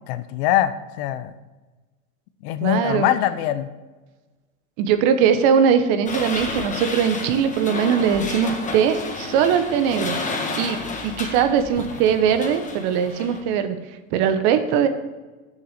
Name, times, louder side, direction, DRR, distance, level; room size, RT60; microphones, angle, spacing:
voice 1, 0.1-1.3 2.4-3.7, left 12 dB, 50° left, 13 dB, 0.7 m, -23 dB
voice 2, 2.6-3.1 4.8-10.1 10.5-13.8 14.1-14.9, right 7 dB, 50° right, 9 dB, 1.1 m, -20 dB
sound 1, 6.1-13.4, left 3 dB, 15° left, 1.5 m, -31 dB
7.1 x 7.1 x 6.5 m, 1.2 s
hypercardioid pair, 105°, 42 cm